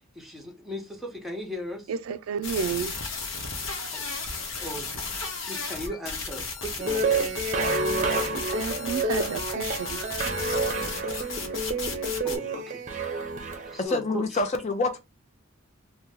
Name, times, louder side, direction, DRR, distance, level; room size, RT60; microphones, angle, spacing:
voice 1, 0.1-1.9 3.9-4.0 4.6-5.0 5.5-7.3 12.2-12.8 13.7-14.4, equal, ahead, 0.8 m, -37 dB
voice 2, 1.9-3.0 8.3-10.0, right 7 dB, 85° right, 0.3 m, -31 dB
sound 1, 2.4-12.4, left 4 dB, 70° left, 0.9 m, -34 dB
sound 2, 6.8-13.8, right 2 dB, 35° right, 0.6 m, -29 dB
voice 3, 13.8-15.0, left 3 dB, 35° left, 0.5 m, -26 dB
2.9 x 2.2 x 3.5 m
head